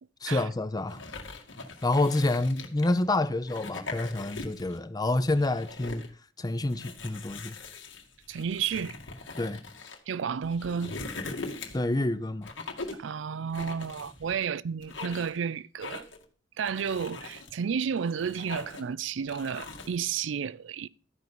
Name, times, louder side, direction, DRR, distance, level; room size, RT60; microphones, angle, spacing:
voice 1, 0.2-1.0 1.8-6.0 6.4-7.6 9.4-9.6 11.7-12.5, left 2 dB, 20° left, 0.6 m, -28 dB
sound 1, 0.9-3.0 3.4-4.8 5.1-6.1 6.7-10.0 10.4-11.9 12.4-13.1 13.5-14.4 14.8-15.4 15.8-16.2 16.7-17.5 18.0-18.9 19.3-20.0, left 3 dB, 75° left, 1.8 m, -41 dB
voice 2, 8.3-9.0 10.1-11.0 12.9-16.1 16.6-20.9, right 6 dB, 75° right, 0.4 m, -32 dB
13.0 x 5.4 x 6.1 m
head